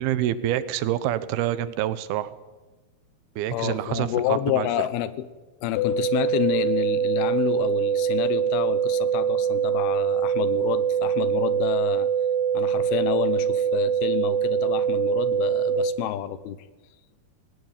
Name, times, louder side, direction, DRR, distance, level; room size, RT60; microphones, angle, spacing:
voice 1, 0.0-2.3 3.4-4.7, right 12 dB, 80° right, 15 dB, 2.9 m, -27 dB
voice 2, 3.5-5.3 5.6-12.1 12.5-16.6, left 12 dB, 85° left, 15 dB, 2.9 m, -28 dB
sound 1, 5.8-15.8, right 8 dB, 55° left, 2.4 m, -24 dB
20.0 x 17.0 x 9.0 m, 1.2 s
omnidirectional pair, 4.4 m